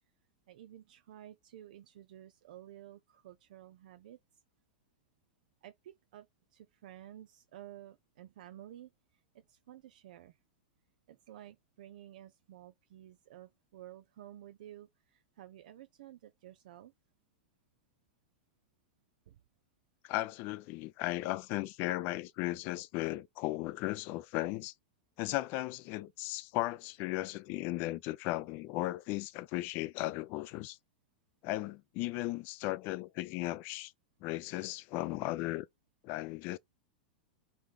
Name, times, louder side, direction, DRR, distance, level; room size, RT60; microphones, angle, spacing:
voice 1, 0.5-4.2 5.6-6.3 6.5-10.4 11.1-16.9 19.3-19.4, right 12 dB, 65° right, 0.4 m, -53 dB
voice 2, 20.0-24.7 25.2-30.8 31.4-33.9 34.2-35.7 36.0-36.6, left 18 dB, 45° left, 0.5 m, -36 dB
4.1 x 3.2 x 3.3 m
hypercardioid pair, 100°, 5 cm